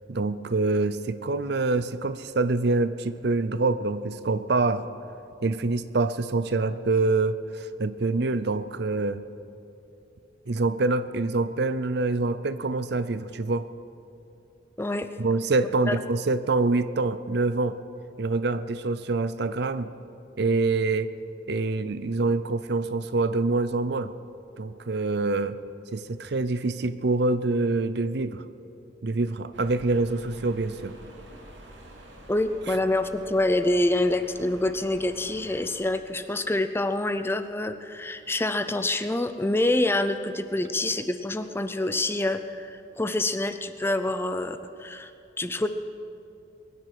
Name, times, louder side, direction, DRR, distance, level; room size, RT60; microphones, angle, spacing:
voice 1, 0.1-4.9 5.4-9.2 10.5-13.7 15.2-17.8 18.2-19.9 20.4-21.1 21.5-24.1 24.6-25.6 25.9-28.4 29.0-31.0, right 3 dB, 60° right, 13 dB, 0.6 m, -25 dB
voice 2, 14.8-15.1 15.9-16.0 32.3-45.1 45.4-45.7, left 2 dB, 10° left, 10 dB, 0.5 m, -26 dB
sound 1, 29.5-35.8, right 1 dB, 80° right, 2.3 m, -47 dB
22.0 x 9.7 x 6.1 m, 2.7 s
head